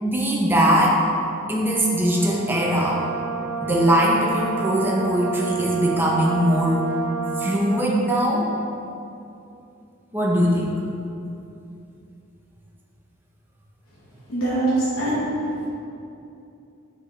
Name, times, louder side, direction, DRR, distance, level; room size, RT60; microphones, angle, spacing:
voice 1, 0.0-1.0 1.5-3.0 3.6-6.9 7.4-8.5 10.1-10.7, equal, 10° right, -4 dB, 0.6 m, -21 dB
Brass instrument, 2.1-8.0, right 5 dB, 90° right, 0.7 m, -30 dB
voice 2, 14.3-15.2, right 2 dB, 85° left, -9 dB, 1.2 m, -22 dB
6.5 x 5.1 x 3.1 m, 2.7 s
head